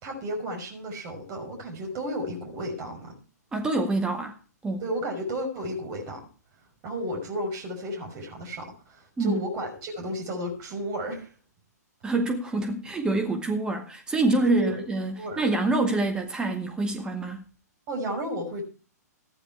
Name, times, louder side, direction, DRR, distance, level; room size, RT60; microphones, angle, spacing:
voice 1, 0.0-3.1 4.8-6.2 6.8-11.3 14.4-14.8 15.1-15.4 17.9-18.6, equal, 30° right, 5.7 m, -33 dB
voice 2, 3.5-4.4 4.6-4.8 9.2-9.5 12.0-17.4, right 2 dB, 10° right, 1.9 m, -26 dB
14.5 x 10.5 x 4.6 m
figure-of-eight pair, 115°, 9 cm